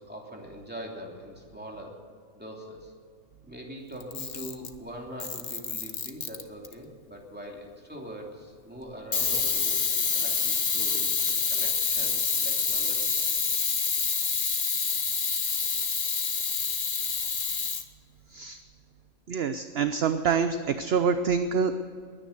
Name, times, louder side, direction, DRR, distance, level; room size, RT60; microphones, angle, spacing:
voice 1, 0.0-1.9 2.4-2.9 3.4-13.3, equal, 5° right, -1 dB, 2.9 m, -43 dB
Camera, 4.0-4.8 5.2-6.7 9.1-17.8, left 5 dB, 40° left, 1.1 m, -27 dB
voice 2, 19.3-21.7, right 6 dB, 55° right, 9 dB, 0.9 m, -26 dB
21.5 x 9.9 x 6.6 m, 2.2 s
omnidirectional pair, 1.4 m